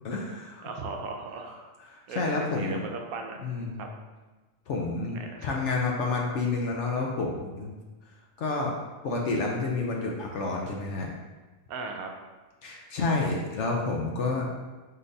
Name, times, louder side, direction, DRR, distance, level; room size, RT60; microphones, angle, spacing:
voice 1, 0.0-0.7 1.9-2.8 3.4-3.9 4.7-7.7 8.4-8.7 9.0-11.1 12.6-14.5, left 3 dB, 65° left, 0 dB, 0.8 m, -29 dB
voice 2, 0.6-1.5 2.1-3.4 3.8-3.9 5.2-5.6 11.7-12.1, right 4 dB, 75° right, 3 dB, 1.0 m, -37 dB
5.6 x 3.3 x 2.6 m, 1.2 s
omnidirectional pair, 1.6 m